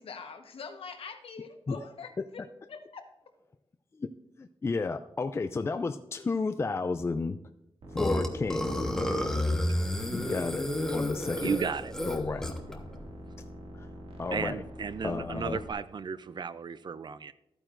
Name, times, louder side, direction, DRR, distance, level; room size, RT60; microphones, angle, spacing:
voice 1, 0.0-2.1 2.7-3.0, left 5 dB, 65° left, 1.2 m, -43 dB
voice 2, 4.4-7.4 7.9-8.7 10.1-11.5 12.0-12.8 13.7-13.9 14.2-14.6 15.0-15.6, left 4 dB, 25° left, 0.3 m, -32 dB
sound 1, 7.8-15.7, equal, 65° right, 2.1 m, -45 dB
Burping eructation, 8.0-12.7, left 1 dB, 5° left, 1.2 m, -30 dB
voice 3, 11.4-11.9 14.3-17.3, right 6 dB, 45° right, 0.4 m, -34 dB
14.0 x 8.9 x 2.6 m
wide cardioid pair, 120°, 10 cm